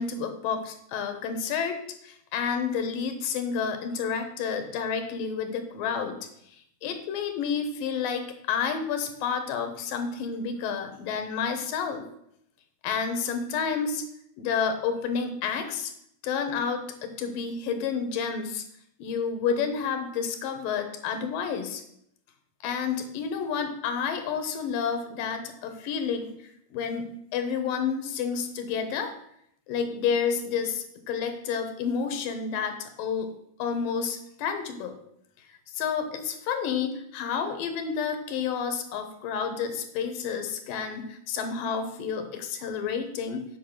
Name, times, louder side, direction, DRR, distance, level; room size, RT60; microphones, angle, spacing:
voice 1, 0.0-6.2 6.5-12.0 12.8-14.0 14.4-15.9 16.2-18.6 19.0-21.8 22.6-26.3 26.7-29.1 29.7-33.3 33.6-35.0 35.7-43.5, left 6 dB, 80° left, 7 dB, 2.8 m, -30 dB
7.9 x 5.6 x 6.5 m, 0.73 s
omnidirectional pair, 3.9 m